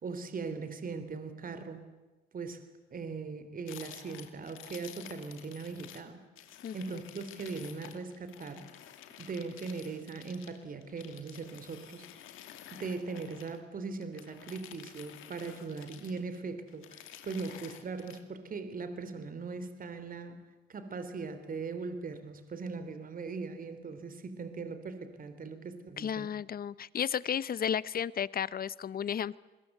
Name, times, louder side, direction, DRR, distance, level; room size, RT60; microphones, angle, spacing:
voice 1, 0.0-1.8 2.3-2.6 2.9-6.2 6.7-8.7 9.2-12.0 12.7-20.4 20.7-26.3, right 4 dB, 45° right, 10 dB, 3.5 m, -40 dB
sound 1, 3.7-6.0 6.3-13.6 14.0-16.4 16.7-18.2, left 11 dB, 90° left, 2.6 m, -51 dB
voice 2, 26.0-29.4, left 8 dB, 50° left, 19 dB, 0.9 m, -33 dB
29.5 x 22.0 x 8.0 m, 1.2 s
cardioid pair, 90°, 20 cm